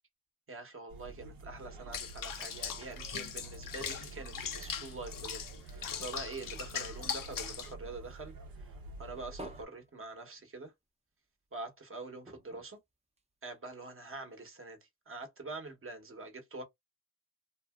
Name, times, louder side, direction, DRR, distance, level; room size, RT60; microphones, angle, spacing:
voice 1, 0.5-8.7 9.0-10.7 11.5-12.8 13.4-16.6, right 3 dB, 40° right, 1.0 m, -45 dB
sound 1, 0.9-9.6, right 3 dB, 80° right, 0.9 m, -49 dB
Water / Bathtub (filling or washing), 1.9-7.7, left 8 dB, 70° left, 0.7 m, -40 dB
sound 2, 6.5-8.3 8.7-10.9 11.2-11.3 11.6-11.8 12.2-13.7 14.4-14.5, right 1 dB, 20° right, 0.7 m, -53 dB
2.7 x 2.6 x 2.3 m
cardioid pair, 60°, 35 cm